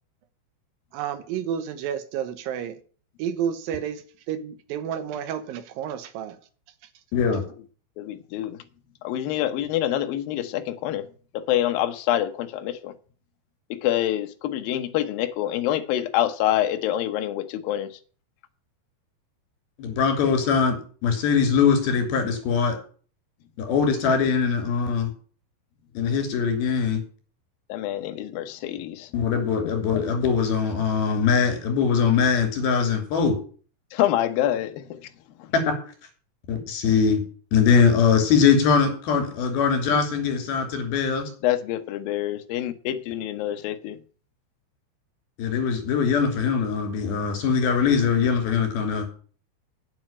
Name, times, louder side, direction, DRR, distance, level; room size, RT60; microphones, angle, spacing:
voice 1, 0.9-2.8 3.2-6.4, right 9 dB, 75° right, 2.2 m, -31 dB
voice 2, 7.1-7.4 19.8-22.8 23.6-25.1 25.9-27.0 29.1-33.4 35.5-35.6 36.5-37.2 37.5-41.2 45.4-49.1, left 6 dB, 55° left, 4.8 m, -22 dB
voice 3, 8.0-8.6 9.0-11.1 11.3-12.9 13.7-17.9 27.7-29.1 33.9-34.9 41.4-44.0, left 12 dB, 80° left, 2.1 m, -26 dB
8.7 x 7.7 x 8.8 m
omnidirectional pair, 5.3 m